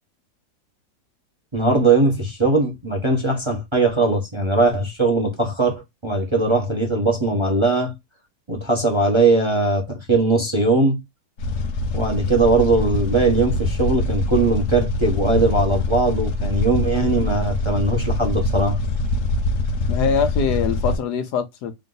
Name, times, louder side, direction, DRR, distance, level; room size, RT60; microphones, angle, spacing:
voice 1, 1.5-7.9 8.5-11.0 11.9-18.8, right 3 dB, 25° right, 0.8 m, -20 dB
sound 1, 11.4-21.0, left 2 dB, 60° left, 0.9 m, -24 dB
voice 2, 19.9-21.9, left 7 dB, 80° left, 1.3 m, -23 dB
3.6 x 2.6 x 3.8 m
omnidirectional pair, 1.7 m